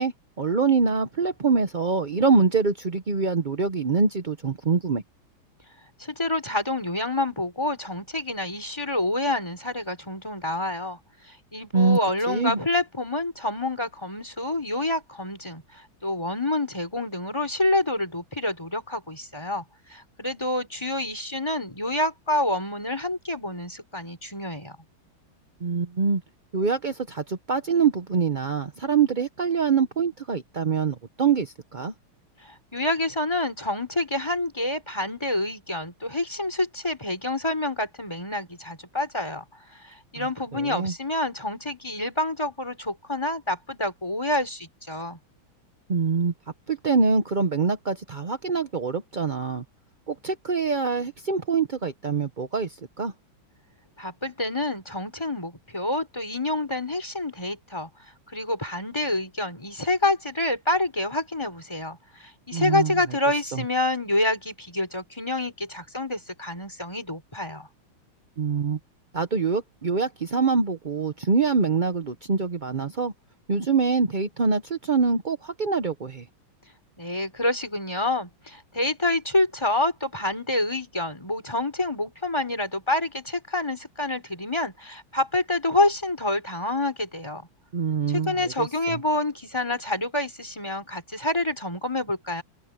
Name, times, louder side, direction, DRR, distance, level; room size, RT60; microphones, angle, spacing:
voice 1, 0.0-5.0 11.7-12.0 12.3-12.6 25.6-26.2 26.5-31.9 40.2-40.3 40.5-40.9 45.9-46.3 46.7-49.6 50.1-53.1 62.5-62.9 63.5-63.6 68.4-68.8 69.1-73.1 73.5-76.2 87.7-89.0, right 5 dB, 55° right, 0.5 m, -24 dB
voice 2, 6.0-11.0 11.3-15.6 16.0-19.6 19.9-24.7 32.4-39.4 39.8-45.2 54.0-57.9 58.3-67.7 77.0-87.4 88.1-92.4, left 2 dB, 10° left, 4.5 m, -27 dB
open air
omnidirectional pair, 2.3 m